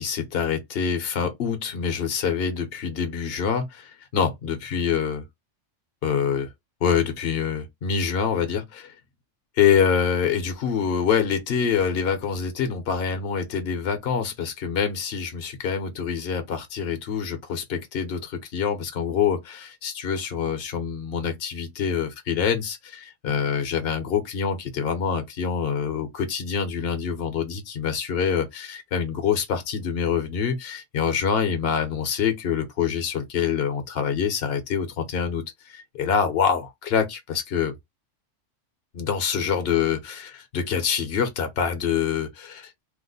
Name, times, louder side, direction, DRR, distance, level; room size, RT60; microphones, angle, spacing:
voice 1, 0.0-5.2 6.0-6.5 6.8-8.9 9.6-37.7 38.9-42.8, left 7 dB, 55° left, 1.0 m, -26 dB
2.9 x 2.1 x 3.9 m
omnidirectional pair, 1.2 m